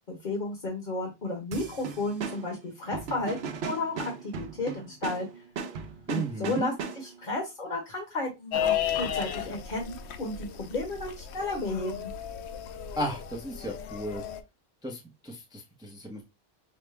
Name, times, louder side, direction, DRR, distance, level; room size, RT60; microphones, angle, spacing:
voice 1, 0.1-3.4 3.6-5.3 6.1-12.1, left 2 dB, 45° left, 1.3 m, -33 dB
sound 1, 1.5-7.3, right 5 dB, 65° right, 0.9 m, -38 dB
voice 2, 6.1-6.7 13.0-14.2 14.8-16.2, right 1 dB, 5° right, 0.6 m, -34 dB
sound 2, 8.5-14.4, left 9 dB, 70° left, 0.8 m, -34 dB
5.7 x 2.1 x 3.3 m
omnidirectional pair, 1.2 m